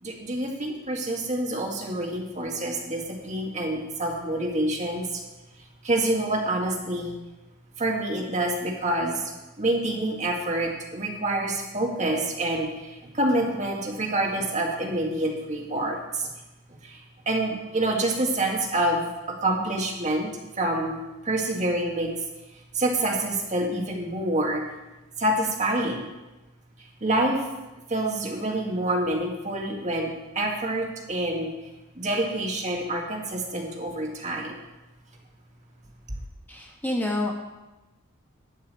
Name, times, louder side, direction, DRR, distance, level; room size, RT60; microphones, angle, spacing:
voice 1, 0.0-5.2 5.8-7.1 7.8-9.3 9.6-16.3 16.8-17.0 17.3-20.3 20.6-21.0 21.2-22.1 22.7-24.6 25.2-26.1 27.0-27.4 27.9-31.5 32.0-34.6, right 1 dB, 35° right, 0 dB, 1.9 m, -27 dB
voice 2, 36.5-37.3, left 1 dB, 10° left, -1 dB, 1.3 m, -28 dB
12.0 x 5.6 x 8.1 m, 1.0 s
head